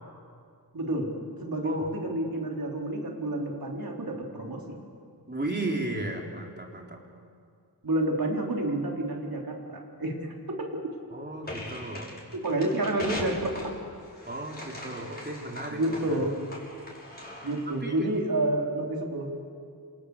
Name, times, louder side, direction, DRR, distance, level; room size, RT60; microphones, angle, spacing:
voice 1, 0.7-4.8 7.8-10.9 12.4-13.7 15.7-16.3 17.4-19.3, right 1 dB, 60° right, 0 dB, 4.6 m, -29 dB
voice 2, 5.3-7.0 11.1-12.1 14.3-15.8 16.1-16.2 17.7-18.1, right 2 dB, 25° right, 0 dB, 4.0 m, -34 dB
sound 1, 11.4-17.8, left 1 dB, 25° left, 6.9 m, -40 dB
28.5 x 27.0 x 6.8 m, 2.3 s
wide cardioid pair, 85°, 40 cm